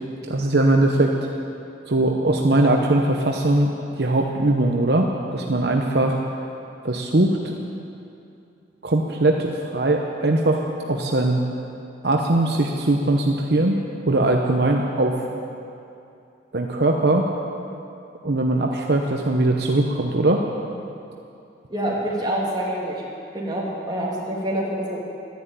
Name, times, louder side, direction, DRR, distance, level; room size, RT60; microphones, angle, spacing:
voice 1, 0.3-1.1 1.9-3.7 4.0-6.2 6.8-7.6 8.8-10.6 10.9-11.5 12.0-13.8 14.1-15.2 16.5-17.3 18.2-20.4, right 2 dB, 65° right, 1 dB, 0.9 m, -20 dB
voice 2, 21.7-23.0 23.3-25.0, right 1 dB, 25° right, -5 dB, 2.9 m, -26 dB
13.0 x 10.5 x 8.9 m, 2.6 s
head